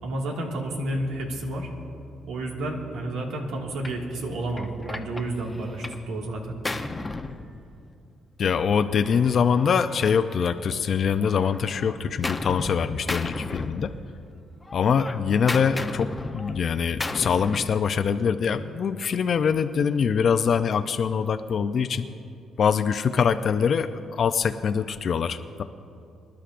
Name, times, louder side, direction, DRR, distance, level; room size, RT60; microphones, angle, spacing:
voice 1, 0.0-1.7 2.3-6.6, right 1 dB, 90° right, 0 dB, 1.9 m, -31 dB
Gunshot gunfire, 3.8-4.0 4.6-6.1 6.4-8.1 9.0-10.8 11.2-12.8 13.1-14.3 14.6-17.8, left 2 dB, 20° left, 0.7 m, -35 dB
voice 2, 8.4-13.9 14.7-22.1 22.6-25.6, left 6 dB, 55° left, 9 dB, 0.5 m, -24 dB
25.0 x 11.5 x 2.5 m, 2.6 s
cardioid pair, 90°, 0 cm